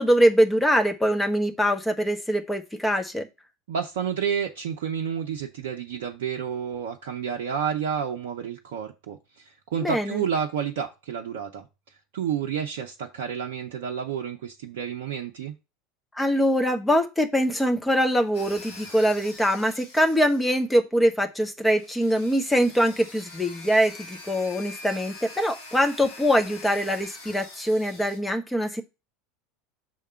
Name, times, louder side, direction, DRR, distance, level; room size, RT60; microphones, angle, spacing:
voice 1, 0.0-3.3 9.8-10.2 16.1-28.8, equal, 5° left, 1.1 m, -23 dB
voice 2, 3.7-11.7 12.1-15.6, right 7 dB, 60° right, 0.6 m, -30 dB
sound 1, 18.3-20.7 21.7-28.2, left 2 dB, 60° left, 1.9 m, -44 dB
6.4 x 3.6 x 5.5 m
figure-of-eight pair, 75°, 0 cm